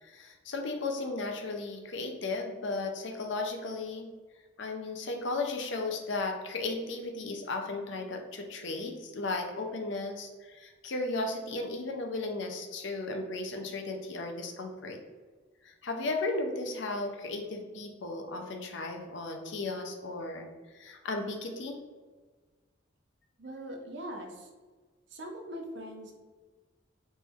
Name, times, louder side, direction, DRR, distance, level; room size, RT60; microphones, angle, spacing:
voice 1, 0.0-4.1 4.6-15.0 15.6-21.8, left 2 dB, 65° left, 4 dB, 0.6 m, -35 dB
voice 2, 23.4-24.5 25.1-26.1, right 1 dB, 60° right, 1 dB, 0.7 m, -41 dB
3.2 x 3.1 x 3.5 m, 1.4 s
head